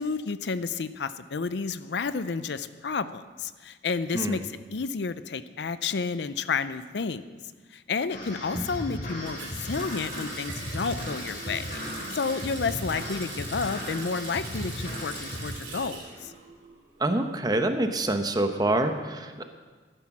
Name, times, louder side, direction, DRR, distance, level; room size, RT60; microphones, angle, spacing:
voice 1, 0.0-7.3 7.7-11.6 11.9-16.3, left 5 dB, 65° left, 13 dB, 0.5 m, -31 dB
voice 2, 4.1-4.5 8.5-8.6 17.0-19.4, right 1 dB, 20° right, 7 dB, 0.9 m, -26 dB
sound 1, 8.1-15.5, left 1 dB, 50° left, 3.6 m, -36 dB
Water tap faucet, 9.3-17.0 17.3-18.4, right 4 dB, 80° right, 3.2 m, -42 dB
12.5 x 10.0 x 6.0 m, 1.4 s
head